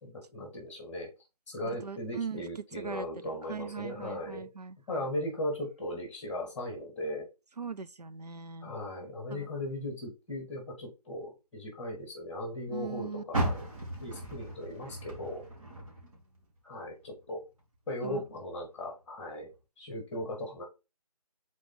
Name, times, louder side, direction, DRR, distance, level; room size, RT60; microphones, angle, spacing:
voice 1, 0.0-1.1 1.5-4.5 4.9-7.3 8.6-13.6 14.0-15.4 16.6-17.4 17.9-19.5 19.8-20.6, left 1 dB, 5° left, 1.9 m, -37 dB
voice 2, 1.6-5.0 7.6-8.7 9.3-9.5 12.7-13.2 18.0-18.2, right 5 dB, 90° right, 0.5 m, -40 dB
Car, 13.3-16.6 17.0-18.3 18.8-18.9 19.5-19.6, right 1 dB, 60° right, 2.8 m, -36 dB
6.2 x 4.2 x 3.6 m
figure-of-eight pair, 155°, 20 cm